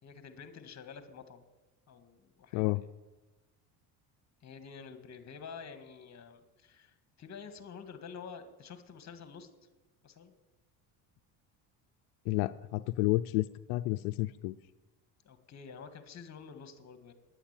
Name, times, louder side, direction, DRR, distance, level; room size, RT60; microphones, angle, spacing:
voice 1, 0.0-1.4 1.9-2.8 4.4-9.5 10.0-10.3 15.2-17.1, left 6 dB, 35° left, 9 dB, 1.7 m, -49 dB
voice 2, 12.3-14.6, left 19 dB, 90° left, 11 dB, 0.5 m, -30 dB
10.0 x 9.6 x 8.8 m, 1.1 s
supercardioid pair, 105°, 45 cm